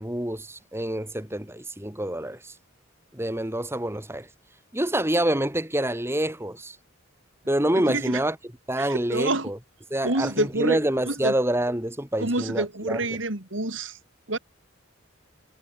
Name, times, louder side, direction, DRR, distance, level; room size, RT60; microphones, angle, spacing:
voice 1, 0.0-2.5 3.1-4.3 4.7-6.8 7.5-8.4 8.7-9.6 9.9-13.0, right 1 dB, 10° right, 2.5 m, -27 dB
voice 2, 7.8-8.2 8.8-9.5 10.0-10.8 11.1-11.3 12.2-14.0 14.3-14.4, right 2 dB, 70° right, 3.1 m, -27 dB
head